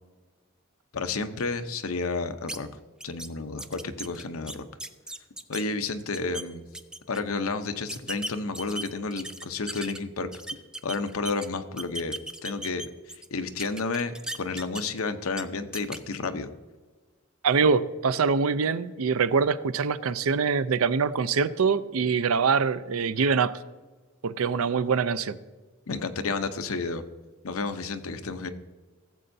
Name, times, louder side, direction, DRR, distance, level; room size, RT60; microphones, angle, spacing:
voice 1, 0.9-2.7 3.0-4.7 5.5-6.6 7.1-10.3 10.8-12.2 12.4-16.5 25.9-27.0 27.4-28.5, left 3 dB, 80° left, 8 dB, 0.8 m, -31 dB
sound 1, 2.5-2.6 3.0-3.3 3.6-5.6 6.0-6.4 6.7-7.2 7.9-10.0 10.3-11.5 11.8-13.3 13.6-15.0 15.3-15.4 15.7-16.0, right 1 dB, 5° right, 0.3 m, -36 dB
voice 2, 17.4-23.6 24.2-25.4, right 5 dB, 85° right, 15 dB, 0.5 m, -24 dB
16.0 x 7.7 x 2.7 m, 1.3 s
head